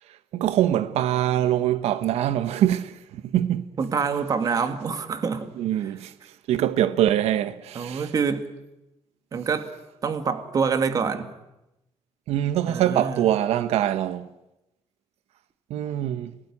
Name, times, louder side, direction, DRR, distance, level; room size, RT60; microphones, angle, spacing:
voice 1, 0.1-3.7 5.6-8.1 12.3-14.3 15.7-16.3, right 11 dB, 90° right, 1.0 m, -24 dB
voice 2, 3.8-5.5 7.8-8.5 9.3-9.7 10.0-11.3 12.7-13.2, right 5 dB, 35° right, 2.0 m, -26 dB
29.0 x 18.5 x 9.8 m
cardioid pair, 170°, 10 cm